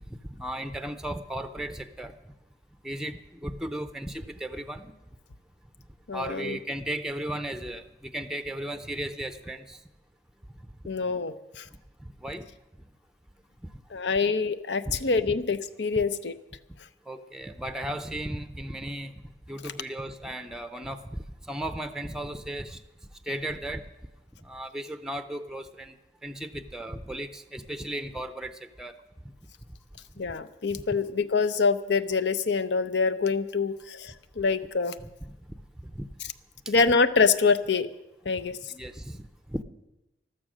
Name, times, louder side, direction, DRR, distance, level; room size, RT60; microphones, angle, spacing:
voice 1, 0.3-2.2 2.8-4.9 6.1-9.8 12.0-12.5 14.9-15.0 15.3-15.4 17.1-19.1 19.5-22.8 23.3-23.9 24.4-26.0 26.2-28.9 30.3-30.4 35.0-35.3 35.8-36.1 38.7-39.6, right 1 dB, 5° right, 9 dB, 0.6 m, -35 dB
voice 2, 6.1-6.6 10.9-11.7 13.9-16.3 30.2-34.9 36.7-37.9 38.2-38.6, left 4 dB, 70° left, 12 dB, 0.7 m, -25 dB
14.0 x 13.0 x 6.3 m, 0.95 s
head